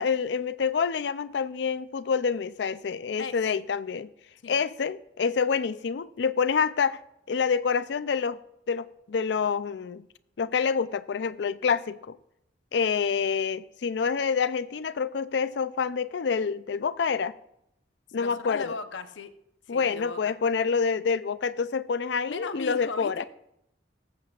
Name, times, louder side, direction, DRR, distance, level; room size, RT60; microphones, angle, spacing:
voice 1, 0.0-4.1 4.5-7.0 7.3-8.4 8.7-10.0 10.4-12.2 12.7-17.3 18.1-18.7 19.7-23.2, left 6 dB, 70° left, 0.4 m, -27 dB
voice 2, 18.2-19.3 19.7-20.3 22.3-23.3, left 4 dB, 90° left, 0.8 m, -37 dB
22.0 x 7.5 x 2.4 m
head